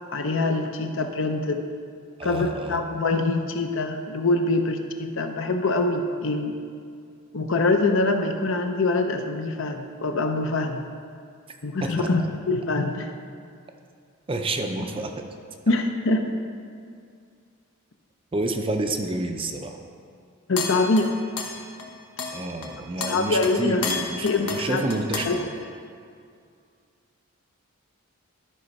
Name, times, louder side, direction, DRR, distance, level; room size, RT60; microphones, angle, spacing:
voice 1, 0.0-1.6 2.2-6.6 7.3-10.8 11.6-12.2 12.5-13.1 15.7-16.4 20.5-21.1 23.1-23.8 24.2-24.8 25.3-25.4, left 2 dB, 60° left, 5 dB, 0.7 m, -24 dB
voice 2, 2.2-3.0 11.8-12.1 14.3-15.2 18.3-19.8 22.3-25.6, right 2 dB, 25° right, 5 dB, 0.5 m, -29 dB
sound 1, 20.6-21.9 22.2-25.6, left 4 dB, 85° left, 1.1 m, -32 dB
12.5 x 4.3 x 5.3 m, 2.2 s
head